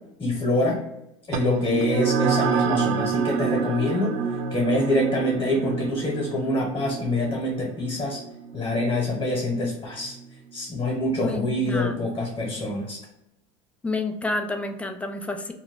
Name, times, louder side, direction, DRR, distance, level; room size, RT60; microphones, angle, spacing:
voice 1, 0.2-0.8 1.3-4.2 4.5-8.2 8.5-10.2 10.5-13.0, left 1 dB, 30° left, -1 dB, 1.1 m, -25 dB
sound 1, 1.3-10.2, right 6 dB, 55° right, 0.4 m, -28 dB
voice 2, 11.2-12.1 13.8-15.5, left 2 dB, 10° left, 5 dB, 0.4 m, -29 dB
2.3 x 2.1 x 3.6 m, 0.85 s
supercardioid pair, 105°, 16 cm